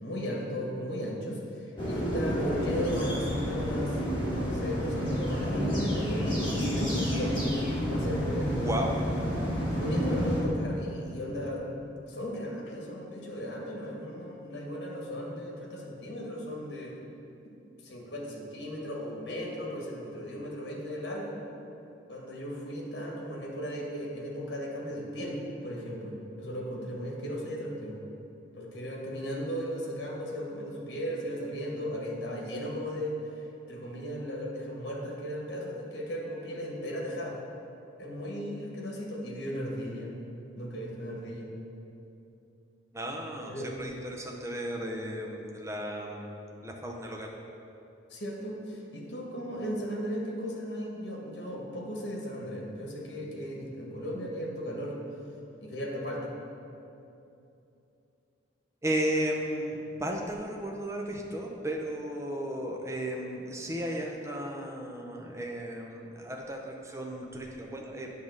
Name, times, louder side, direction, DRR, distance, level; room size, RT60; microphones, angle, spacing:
voice 1, 0.0-4.0 4.3-8.7 9.6-17.0 17.8-21.5 22.1-28.0 28.6-37.4 38.0-40.1 40.6-41.5 43.5-43.7 48.1-55.0 55.6-56.3, equal, 55° left, -2 dB, 1.3 m, -36 dB
sound 1, 1.8-10.4, equal, 25° left, 1.8 m, -30 dB
voice 2, 8.5-8.9 42.9-47.3 58.8-68.1, right 1 dB, 15° right, 0 dB, 0.6 m, -34 dB
8.4 x 3.6 x 6.5 m, 2.8 s
head